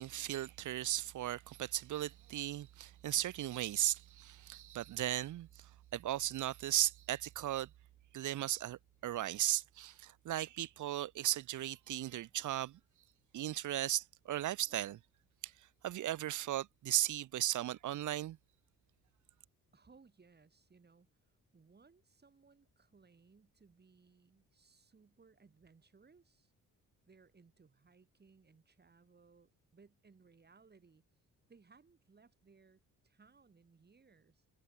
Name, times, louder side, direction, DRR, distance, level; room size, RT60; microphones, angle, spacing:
voice 1, 0.0-7.7 8.1-12.8 13.3-15.0 15.4-15.5 15.8-18.4, right 13 dB, 60° right, 0.7 m, -36 dB
voice 2, 19.7-21.1 21.5-26.5 27.1-31.0 31.5-34.4, right 4 dB, 30° right, 4.8 m, -65 dB
cardioid pair, 115°, 34 cm